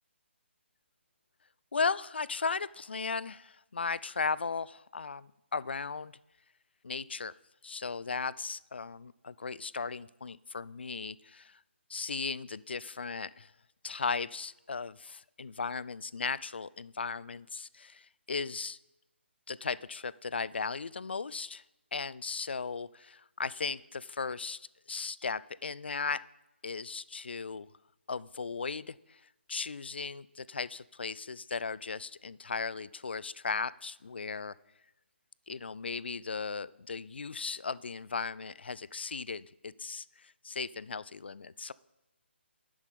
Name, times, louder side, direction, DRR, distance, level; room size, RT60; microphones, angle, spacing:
voice 1, 1.7-6.1 6.8-7.3 7.6-11.6 11.9-13.5 13.8-18.8 19.5-21.6 21.9-26.2 26.6-27.7 28.1-29.2 29.5-34.6 35.5-41.7, left 5 dB, 60° left, 21 dB, 0.4 m, -36 dB
11.5 x 11.0 x 5.2 m, 0.95 s
figure-of-eight pair, 140°, 7 cm